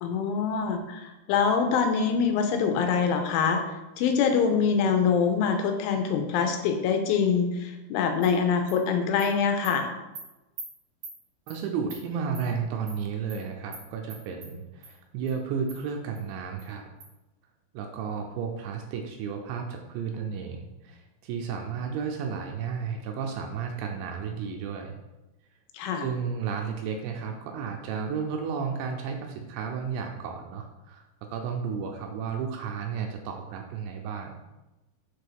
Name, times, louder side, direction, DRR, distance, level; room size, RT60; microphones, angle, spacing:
voice 1, 0.0-3.6 4.0-9.9 25.7-26.1, left 6 dB, 90° left, 5 dB, 3.2 m, -24 dB
Animal, 8.2-8.3 8.7-8.8 9.2-9.3 9.6-9.7 10.2-10.3 10.6-10.7 11.0-11.2 11.5-11.6 11.9-12.0 12.3-12.5 12.9-13.0 13.3-13.4 13.7-13.8 14.1-14.5 14.8-14.9 15.3-15.4 15.7-15.8 16.2-16.3 16.6-16.7 17.0-17.1, right 4 dB, 50° right, 3.1 m, -42 dB
voice 2, 11.5-16.8 17.7-25.0 26.0-34.4, right 6 dB, 80° right, 3 dB, 2.7 m, -33 dB
7.0 x 4.9 x 4.5 m, 1.0 s
omnidirectional pair, 5.6 m